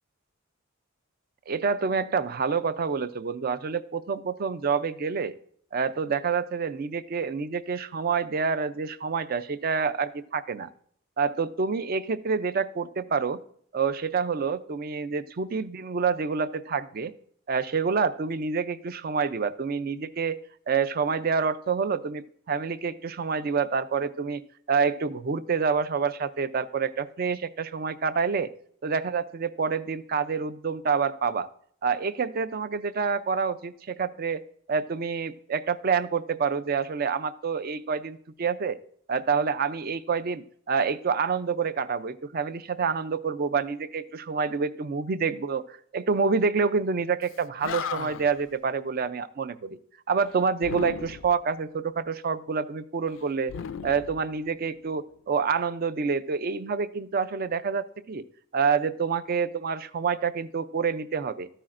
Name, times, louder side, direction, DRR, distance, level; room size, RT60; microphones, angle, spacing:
voice 1, 1.5-5.3 5.7-10.7 11.2-13.4 13.7-17.1 17.5-20.4 20.7-28.5 28.8-31.5 31.8-34.4 34.7-38.8 39.1-49.8 50.1-53.5 53.8-58.2 58.5-61.5, right 5 dB, 45° right, 14 dB, 0.4 m, -27 dB
Animal, 47.3-47.4 47.6-48.4 50.6-51.4 53.5-54.8, left 7 dB, 65° left, 0.3 m, -36 dB
13.0 x 10.0 x 2.5 m, 0.62 s
head